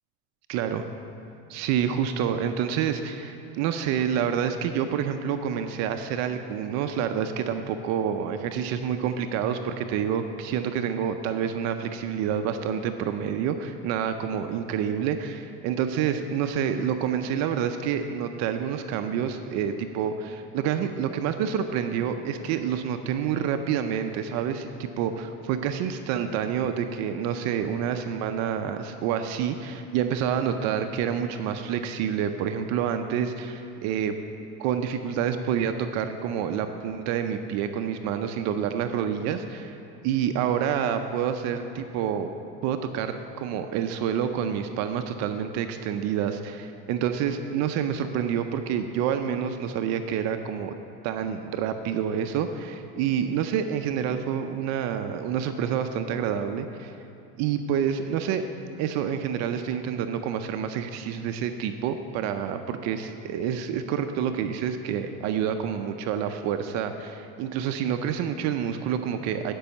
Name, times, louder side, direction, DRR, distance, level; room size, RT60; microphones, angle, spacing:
voice 1, 0.5-0.9 1.5-34.2 34.6-39.8 40.0-42.3 42.6-50.7 51.0-57.0 57.4-58.4 58.8-69.5, right 8 dB, 60° right, 8 dB, 0.6 m, -28 dB
10.0 x 5.4 x 6.9 m, 2.8 s
supercardioid pair, 120°, 31 cm